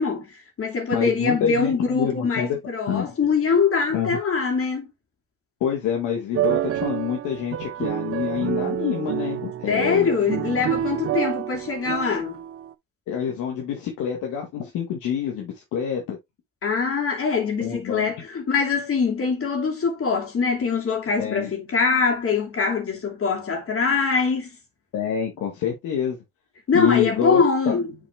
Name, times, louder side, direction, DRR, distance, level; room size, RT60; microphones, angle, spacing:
voice 1, 0.0-4.9 9.7-12.4 16.6-24.6 26.7-27.9, left 5 dB, 45° left, 2.7 m, -23 dB
voice 2, 0.9-2.5 2.9-3.1 3.9-4.2 5.6-10.1 13.1-16.2 17.6-18.1 21.2-21.5 24.9-26.2 26.7-27.7, left 8 dB, 90° left, 1.7 m, -27 dB
sound 1, 6.3-12.7, right 11 dB, 50° right, 0.6 m, -28 dB
7.0 x 3.9 x 3.4 m
cardioid pair, 90°, 30 cm